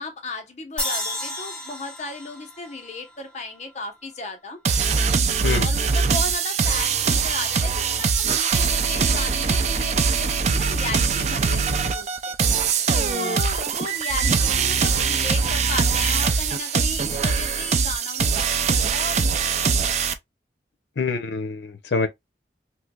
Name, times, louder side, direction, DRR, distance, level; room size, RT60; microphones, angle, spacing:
voice 1, 0.0-4.6 5.5-12.3 13.1-20.1, left 3 dB, 40° left, 0.7 m, -35 dB
sound 1, 0.8-4.0, left 1 dB, 5° left, 1.1 m, -32 dB
sound 2, 4.6-20.1, right 5 dB, 40° right, 0.4 m, -22 dB
voice 2, 21.0-22.1, left 4 dB, 85° left, 0.6 m, -25 dB
3.2 x 3.0 x 2.2 m
head